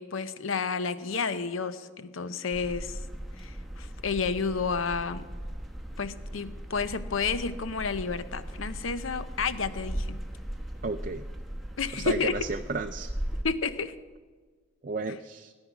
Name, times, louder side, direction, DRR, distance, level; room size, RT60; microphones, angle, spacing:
voice 1, 0.0-3.0 3.4-5.2 6.0-10.2 11.8-12.5 13.4-13.9, left 5 dB, 85° left, 13 dB, 0.7 m, -31 dB
sound 1, 2.5-13.4, equal, ahead, 1.1 m, -38 dB
voice 2, 10.8-11.2 12.0-13.1 14.8-15.5, right 3 dB, 40° right, 6 dB, 0.4 m, -33 dB
17.5 x 9.8 x 6.1 m, 1.5 s
head